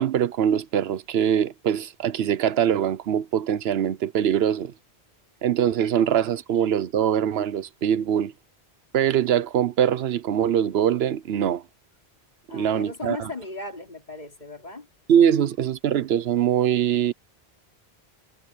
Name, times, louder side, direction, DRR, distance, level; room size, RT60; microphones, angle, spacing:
voice 1, 0.0-4.7 5.4-8.3 8.9-11.6 12.5-13.2 15.1-17.1, right 9 dB, 75° right, 0.9 m, -22 dB
voice 2, 12.5-14.9, left 2 dB, 45° left, 3.9 m, -36 dB
omnidirectional pair, 1.1 m